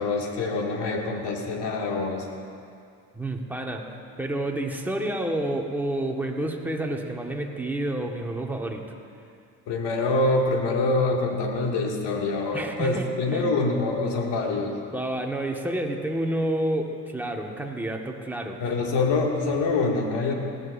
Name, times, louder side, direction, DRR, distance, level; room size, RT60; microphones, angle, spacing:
voice 1, 0.0-2.3 9.7-14.8 18.6-20.3, left 3 dB, 55° left, 0 dB, 2.5 m, -25 dB
voice 2, 3.1-8.8 12.5-13.1 13.3-13.5 14.9-18.6, right 1 dB, 5° right, 0 dB, 1.7 m, -29 dB
19.0 x 15.0 x 2.7 m, 2.3 s
hypercardioid pair, 65°, 49 cm